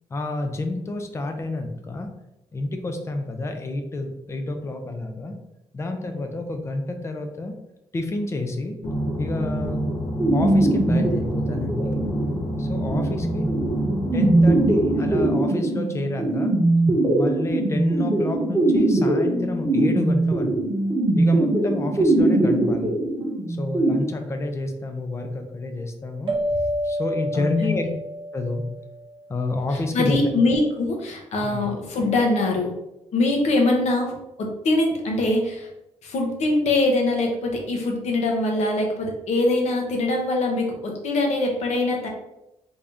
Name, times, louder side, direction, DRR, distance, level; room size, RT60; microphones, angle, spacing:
voice 1, 0.1-2.1 2.5-5.3 5.7-7.5 7.9-8.8 9.2-9.8 10.3-12.0 12.6-13.5 14.1-16.5 17.1-20.5 21.2-22.9 23.5-27.8 28.3-28.6 29.3-30.3 31.4-31.7, left 2 dB, 25° left, 5 dB, 0.4 m, -29 dB
sound 1, 8.8-15.3, equal, 90° left, 1.2 m, -27 dB
sound 2, 10.2-23.9, right 2 dB, 20° right, 1.0 m, -21 dB
sound 3, 26.3-29.3, equal, 45° right, 0.6 m, -28 dB
voice 2, 27.3-27.9 29.9-32.7 33.1-35.7 36.0-42.1, left 2 dB, 70° left, 1 dB, 0.9 m, -23 dB
3.5 x 2.6 x 3.4 m, 0.89 s
wide cardioid pair, 165°, 12 cm